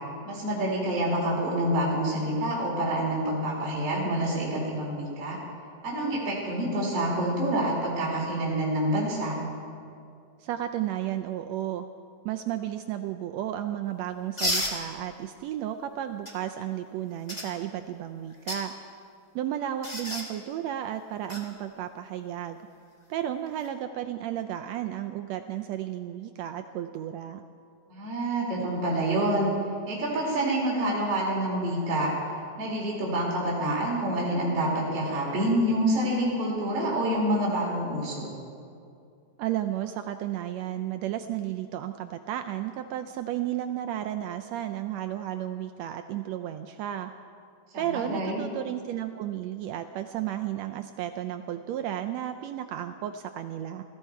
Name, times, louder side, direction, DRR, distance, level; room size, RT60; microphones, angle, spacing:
voice 1, 0.3-5.4 5.8-9.4 27.9-29.5 29.9-32.1 32.6-38.3 47.7-48.4, right 1 dB, 50° right, -5 dB, 3.9 m, -27 dB
voice 2, 10.4-11.9 12.2-18.7 19.3-22.6 23.1-27.4 39.4-47.1 47.8-53.8, right 11 dB, 80° right, 7 dB, 1.6 m, -33 dB
sound 1, 14.4-14.8 16.2-16.3 17.3-17.5 18.3-18.6 19.8-20.3 21.3-21.4 23.5-23.7, left 1 dB, 15° left, 1.5 m, -30 dB
21.0 x 14.0 x 4.6 m, 2.4 s
omnidirectional pair, 3.5 m